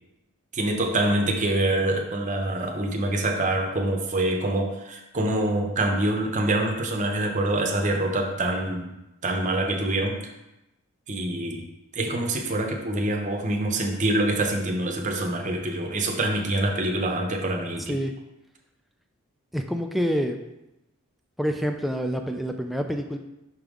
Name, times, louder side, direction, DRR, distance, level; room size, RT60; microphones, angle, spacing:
voice 1, 0.5-8.9 9.2-10.3 11.1-11.6 11.9-18.0, right 1 dB, 35° right, 2 dB, 0.8 m, -25 dB
voice 2, 19.5-20.4 21.4-23.2, equal, ahead, 4 dB, 0.3 m, -27 dB
5.7 x 5.3 x 3.7 m, 0.94 s
head